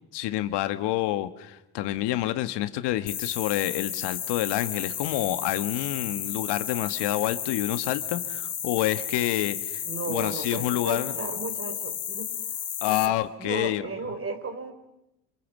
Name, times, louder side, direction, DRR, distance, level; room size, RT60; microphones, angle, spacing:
voice 1, 0.1-11.1 12.8-13.9, left 14 dB, 70° left, 11 dB, 1.6 m, -28 dB
sound 1, 3.1-13.1, left 9 dB, 45° left, 2.7 m, -33 dB
voice 2, 9.8-14.7, right 4 dB, 30° right, 8 dB, 4.9 m, -35 dB
27.5 x 26.5 x 7.4 m, 0.91 s
supercardioid pair, 85°, 43 cm